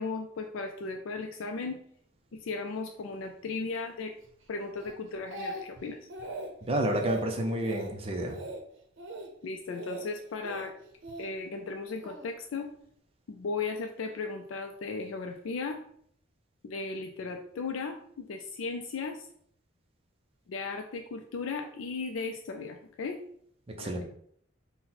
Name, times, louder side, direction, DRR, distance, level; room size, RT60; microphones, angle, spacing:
voice 1, 0.0-1.8 2.3-4.1 4.5-6.0 9.4-10.7 11.2-12.7 13.3-15.8 16.6-19.3 20.5-23.2 23.8-24.0, left 4 dB, 85° left, 4 dB, 0.4 m, -36 dB
Speech, 4.8-5.8 6.1-6.5 6.8-7.2 7.6-7.9 8.3-8.6 9.0-9.3 9.7-10.0 10.4-11.3 12.0-12.3, right 2 dB, 75° right, 0.7 m, -39 dB
voice 2, 6.6-8.4 23.8-24.0, right 1 dB, 30° right, 3 dB, 0.5 m, -30 dB
4.2 x 2.1 x 3.9 m, 0.65 s
head